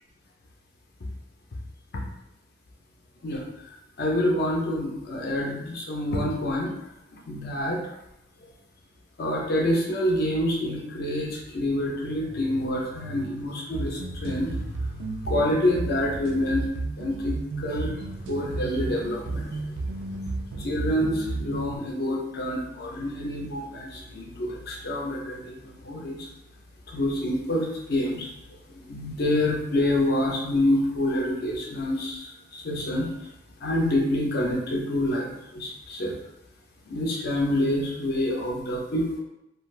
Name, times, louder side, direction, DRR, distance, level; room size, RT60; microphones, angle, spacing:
voice 1, 3.2-6.7 7.1-7.8 9.2-16.7 17.0-26.3 26.9-33.3 33.6-36.2 36.9-39.2, left 1 dB, 55° left, -2 dB, 0.5 m, -27 dB
sound 1, 13.7-21.8, right 3 dB, 75° right, 0.3 m, -33 dB
2.3 x 2.3 x 3.1 m, 0.87 s
head